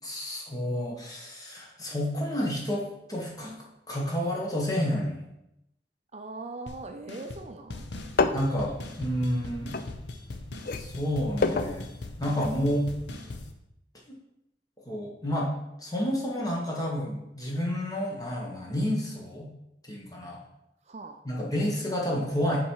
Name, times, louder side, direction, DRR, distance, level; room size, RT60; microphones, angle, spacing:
voice 1, 0.0-3.6 3.9-5.3 8.3-9.7 10.7-11.9 12.2-12.9 14.8-15.5 15.8-19.5 19.8-20.4 21.2-22.6, equal, 20° left, -2 dB, 1.5 m, -30 dB
voice 2, 6.1-7.9 20.8-21.2, right 2 dB, 40° right, 5 dB, 0.5 m, -40 dB
sound 1, 6.7-6.8 7.1-7.4 7.7-13.5, left 2 dB, 85° left, 0.8 m, -40 dB
sound 2, 8.1-10.3 10.6-12.6 12.9-13.0, left 4 dB, 55° left, 0.4 m, -29 dB
7.1 x 4.4 x 4.7 m, 0.85 s
head